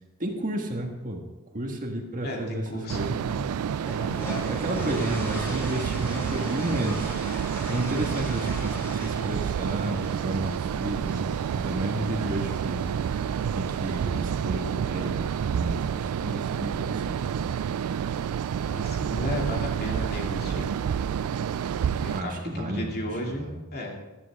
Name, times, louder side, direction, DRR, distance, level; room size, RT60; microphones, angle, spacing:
voice 1, 0.2-1.2 1.5-2.7 2.9-3.5 4.5-7.2 7.7-12.8 13.5-17.4 22.1-23.0 23.3-23.6, right 1 dB, 40° right, 2 dB, 1.7 m, -32 dB
voice 2, 2.2-3.0 4.8-5.1 18.7-20.7 22.0-23.5 23.7-24.0, left 1 dB, 45° left, 0 dB, 2.6 m, -34 dB
sound 1, 2.9-22.2, right 8 dB, 85° right, 0.3 m, -29 dB
sound 2, 3.9-14.4, equal, 10° left, 4.8 m, -41 dB
15.0 x 12.5 x 3.6 m, 1.1 s
head